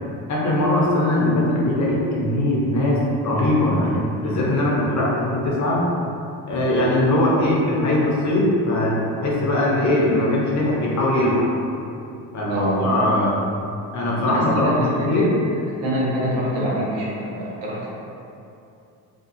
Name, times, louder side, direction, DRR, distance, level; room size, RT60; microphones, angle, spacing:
voice 1, 0.3-5.9 6.5-11.5 12.3-13.4 13.9-14.7 15.0-15.3, left 1 dB, 40° left, -4 dB, 0.8 m, -20 dB
voice 2, 12.5-12.9 14.3-15.2 15.8-17.9, equal, 65° right, -6 dB, 0.9 m, -25 dB
2.4 x 2.3 x 2.6 m, 2.6 s
hypercardioid pair, 65°, 46 cm